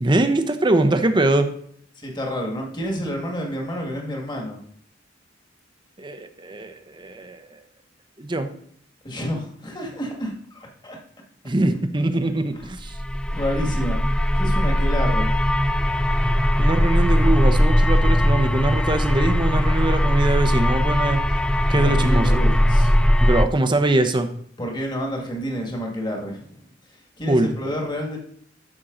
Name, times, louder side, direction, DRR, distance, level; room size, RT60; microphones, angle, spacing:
voice 1, 0.0-1.5 6.0-7.4 8.2-8.5 11.4-13.0 16.6-21.2 21.7-22.4 23.2-24.3 27.3-27.5, right 2 dB, 25° right, 7 dB, 0.8 m, -22 dB
voice 2, 2.0-4.6 9.0-11.0 12.6-12.7 13.3-15.4 21.7-22.9 24.6-26.6 27.2-28.2, equal, 25° left, 0 dB, 2.0 m, -29 dB
sound 1, 12.8-23.4, equal, 5° left, 0.3 m, -19 dB
12.5 x 6.4 x 3.9 m, 0.64 s
head